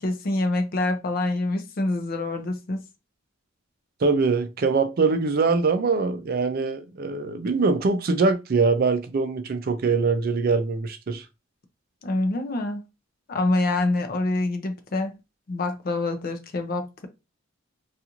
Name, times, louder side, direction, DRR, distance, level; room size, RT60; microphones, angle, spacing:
voice 1, 0.0-2.8 12.0-12.8 13.3-15.2 15.5-17.1, left 2 dB, 45° left, 0.5 m, -26 dB
voice 2, 4.0-11.2, right 4 dB, 50° right, 0.4 m, -23 dB
2.5 x 2.4 x 2.8 m
head